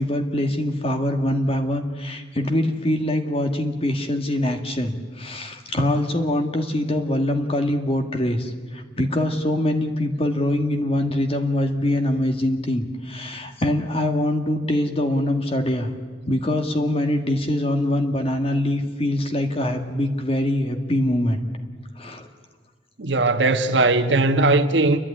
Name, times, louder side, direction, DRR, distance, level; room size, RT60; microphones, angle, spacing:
voice 1, 0.0-15.9 16.3-21.5 22.0-22.3, left 1 dB, 35° left, 2.0 m, -23 dB
voice 2, 23.0-25.0, right 2 dB, 80° right, 1.3 m, -19 dB
29.5 x 11.0 x 10.0 m
head